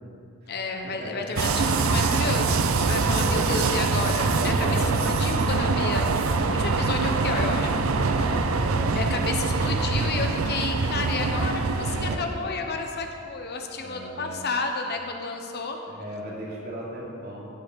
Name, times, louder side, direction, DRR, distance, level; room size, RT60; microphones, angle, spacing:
voice 1, 0.5-7.7 8.1-8.2 8.9-15.8, left 4 dB, 50° left, 4 dB, 0.9 m, -31 dB
voice 2, 1.0-1.4 2.8-3.9 4.3-5.0 8.2-9.2 12.0-12.4 13.8-14.5 15.8-17.5, right 1 dB, 50° right, -5 dB, 3.0 m, -37 dB
sound 1, 1.4-12.2, right 3 dB, 80° right, 0.6 m, -24 dB
15.5 x 5.6 x 6.3 m, 2.5 s
head